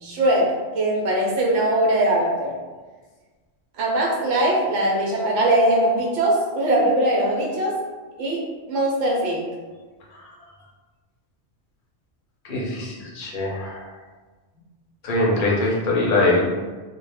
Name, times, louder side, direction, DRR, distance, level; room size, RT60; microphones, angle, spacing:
voice 1, 0.0-2.6 3.8-7.8 8.2-9.5, right 1 dB, 75° right, -2 dB, 1.0 m, -21 dB
voice 2, 12.4-13.9 15.0-16.4, left 2 dB, 50° left, -3 dB, 0.7 m, -22 dB
2.4 x 2.1 x 3.3 m, 1.3 s
omnidirectional pair, 1.3 m